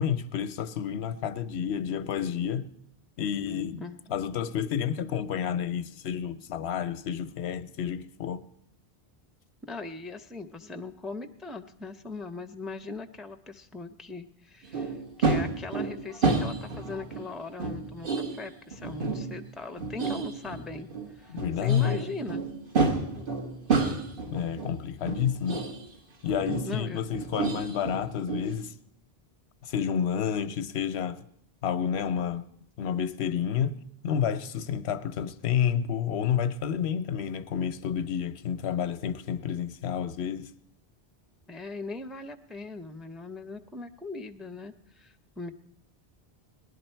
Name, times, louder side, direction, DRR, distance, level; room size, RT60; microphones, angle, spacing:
voice 1, 0.0-2.7 3.2-8.5 21.3-22.0 24.3-25.6 26.2-28.7 29.6-31.3 31.6-32.5 32.8-40.5, left 8 dB, 90° left, 0.9 m, -30 dB
voice 2, 9.6-22.5 26.7-27.0 41.5-45.5, left 3 dB, ahead, 0.5 m, -40 dB
sound 1, 14.7-17.3 17.6-21.1 21.4-24.8 25.1-25.9 26.2-28.5, right 4 dB, 60° right, 1.4 m, -30 dB
18.5 x 11.5 x 4.4 m
omnidirectional pair, 1.0 m